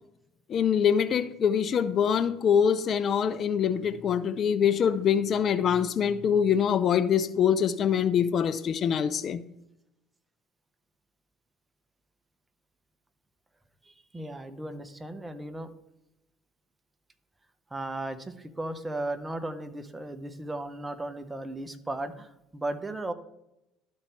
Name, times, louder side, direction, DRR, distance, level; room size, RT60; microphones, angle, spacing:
voice 1, 0.5-9.4, left 8 dB, 50° left, 0.4 m, -24 dB
voice 2, 14.1-15.7 17.7-23.1, right 2 dB, 15° right, 0.8 m, -36 dB
12.5 x 4.5 x 3.1 m
hypercardioid pair, 75°, 0 cm